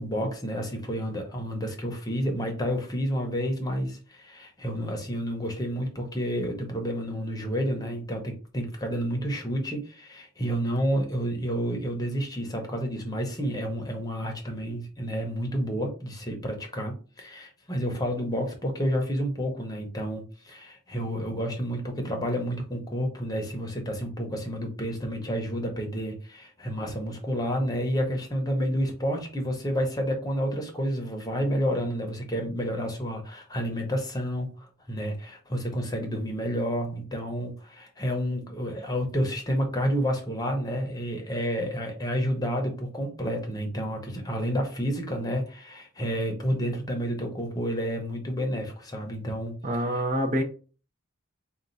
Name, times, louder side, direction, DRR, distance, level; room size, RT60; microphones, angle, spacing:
voice 1, 0.0-49.6 49.9-50.0, equal, 15° left, 0.8 m, -30 dB
voice 2, 49.6-50.4, right 1 dB, 35° right, 0.6 m, -26 dB
4.4 x 2.4 x 3.9 m
head